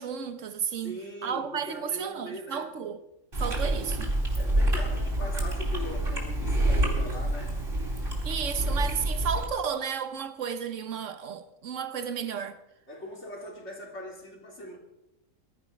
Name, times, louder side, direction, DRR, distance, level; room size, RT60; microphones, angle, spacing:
voice 1, 0.0-3.0 3.4-4.1 8.2-12.6, right 7 dB, 70° right, 1.4 m, -33 dB
voice 2, 0.8-2.7 4.4-7.6 12.9-14.8, equal, 60° left, 3.8 m, -41 dB
Chewing mastication, 3.3-9.5, right 1 dB, 45° right, 4.2 m, -27 dB
21.5 x 12.5 x 5.3 m
omnidirectional pair, 1.3 m